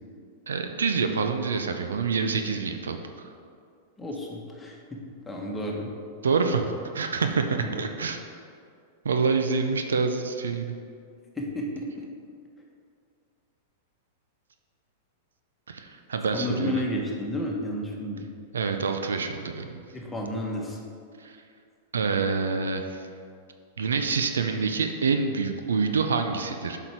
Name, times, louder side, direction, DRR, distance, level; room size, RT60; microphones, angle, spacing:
voice 1, 0.5-3.3 6.2-8.2 9.0-10.7 15.7-16.9 18.5-19.8 21.2-21.4 21.9-23.0 23.8-26.8, right 4 dB, 85° right, 6 dB, 0.6 m, -27 dB
voice 2, 4.0-5.0 5.3-5.9 7.5-7.8 11.4-12.1 16.3-18.3 19.9-20.8, left 1 dB, 10° left, -2 dB, 1.5 m, -32 dB
7.7 x 5.9 x 4.6 m, 2.3 s
hypercardioid pair, 110°, 0 cm